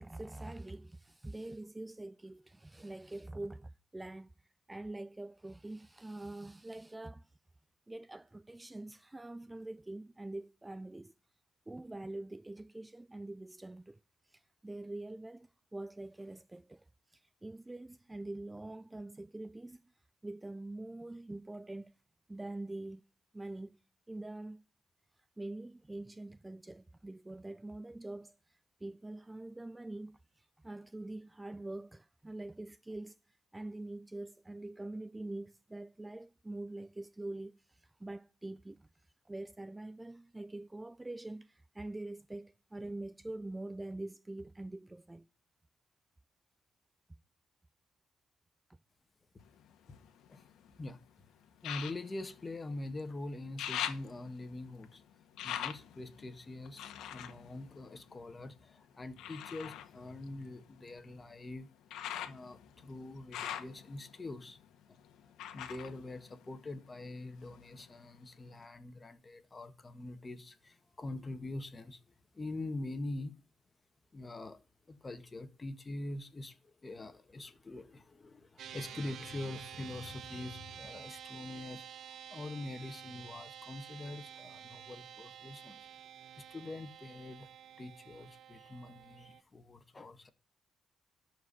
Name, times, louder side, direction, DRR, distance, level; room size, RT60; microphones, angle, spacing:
voice 1, 0.0-4.3 4.7-7.3 7.9-11.1 11.7-14.0 14.3-16.8 17.1-19.8 20.2-21.9 22.3-23.0 23.3-23.8 24.1-24.6 25.4-28.3 28.8-33.2 33.5-38.8 39.3-45.3, right 2 dB, 15° right, 0.5 m, -44 dB
sound 1, 49.4-50.8 51.6-53.1 53.4-58.5 59.2-67.0 67.3-68.2 68.6-68.7, left 10 dB, 85° left, 1.6 m, -44 dB
voice 2, 51.6-55.0 55.4-61.7 62.2-64.6 64.9-65.0 65.5-72.0 72.3-73.3 74.1-74.6 74.9-85.8 86.4-87.5 87.8-90.3, left 2 dB, 25° left, 1.8 m, -44 dB
sound 2, 78.6-89.4, right 9 dB, 70° right, 0.7 m, -50 dB
12.5 x 4.9 x 8.5 m
cardioid pair, 90°, 0 cm